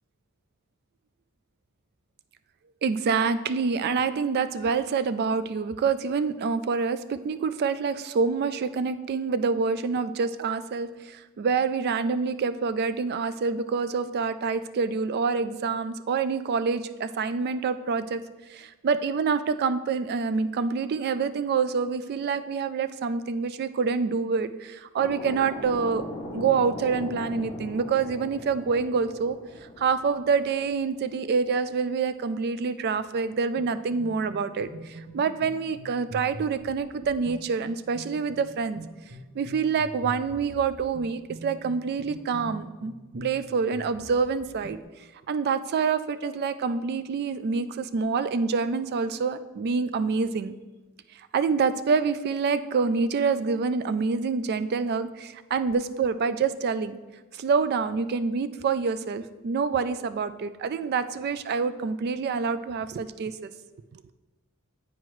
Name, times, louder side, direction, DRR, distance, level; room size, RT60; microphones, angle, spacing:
voice 1, 2.8-18.2 18.5-26.0 26.3-29.4 29.8-38.8 39.4-44.8 45.3-50.5 51.3-57.0 57.3-63.5 63.9-64.1, right 5 dB, 50° right, 12 dB, 0.3 m, -27 dB
sound 1, 25.0-31.3, left 1 dB, 25° left, 0.7 m, -40 dB
sound 2, 33.6-44.8, right 2 dB, 85° right, 1.0 m, -44 dB
9.3 x 4.6 x 3.1 m, 1.2 s
head